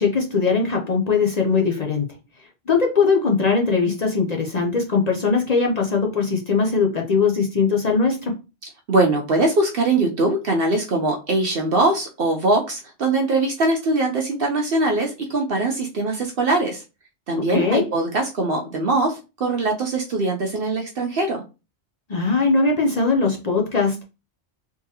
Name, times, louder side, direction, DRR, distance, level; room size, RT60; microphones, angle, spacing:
voice 1, 0.0-2.0 2.7-8.3 17.3-17.8 22.1-24.0, left 4 dB, 45° left, 0.5 m, -20 dB
voice 2, 8.9-16.8 17.3-21.4, right 2 dB, 55° right, 0.8 m, -22 dB
3.6 x 2.9 x 2.8 m
omnidirectional pair, 1.3 m